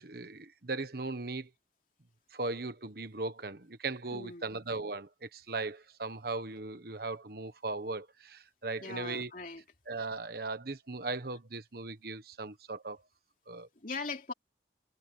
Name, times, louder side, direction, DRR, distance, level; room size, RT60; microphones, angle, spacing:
voice 1, 0.0-1.5 2.3-9.3 9.9-13.0 13.5-13.7, right 3 dB, 55° right, 1.3 m, -38 dB
voice 2, 4.1-4.6 8.8-9.6 13.8-14.3, left 4 dB, 45° left, 3.0 m, -40 dB
head